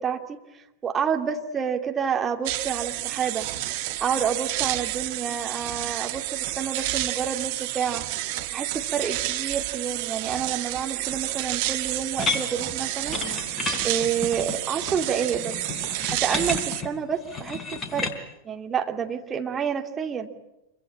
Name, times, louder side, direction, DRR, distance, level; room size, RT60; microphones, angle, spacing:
voice 1, 0.0-3.5 4.0-8.1 8.5-13.2 13.8-15.5 16.1-18.1 18.4-20.3, right 7 dB, 20° right, 4 dB, 2.8 m, -29 dB
sound 1, 2.5-16.8, right 16 dB, 50° right, 1.9 m, -30 dB
sound 2, 12.2-18.2, left 3 dB, 20° left, 4.0 m, -32 dB
27.0 x 24.5 x 8.8 m, 0.92 s
figure-of-eight pair, 90°, 0 cm